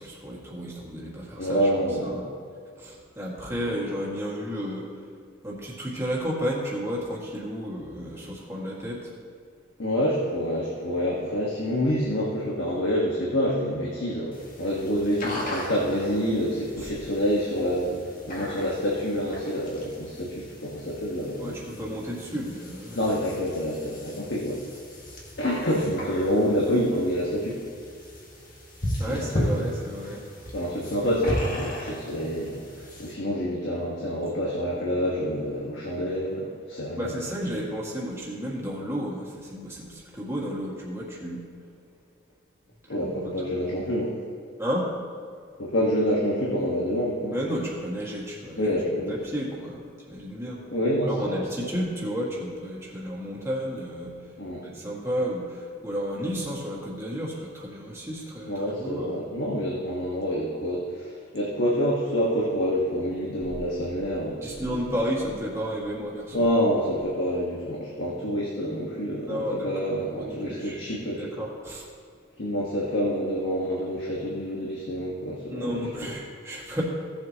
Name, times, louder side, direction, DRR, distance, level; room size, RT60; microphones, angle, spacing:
voice 1, 0.0-1.7 2.0-2.3 2.8-5.1 5.4-9.1 16.8-16.9 21.4-23.0 29.0-30.2 37.0-41.4 43.0-43.7 44.6-44.9 47.3-48.6 48.9-50.6 51.0-54.3 54.6-59.2 64.4-66.5 69.3-69.7 70.0-71.9 75.5-76.8, equal, 15° right, -5 dB, 1.9 m, -32 dB
voice 2, 1.4-2.3 9.8-18.0 18.3-21.6 22.9-24.7 25.4-27.6 29.1-29.7 30.5-32.7 33.0-37.2 42.9-44.2 45.6-47.3 48.6-49.1 50.7-51.7 54.4-54.6 58.5-64.8 66.3-71.3 72.4-76.1, equal, 65° left, -5 dB, 1.5 m, -27 dB
sound 1, 14.3-33.1, equal, 40° left, 1.8 m, -36 dB
16.5 x 7.6 x 3.0 m, 2.2 s
head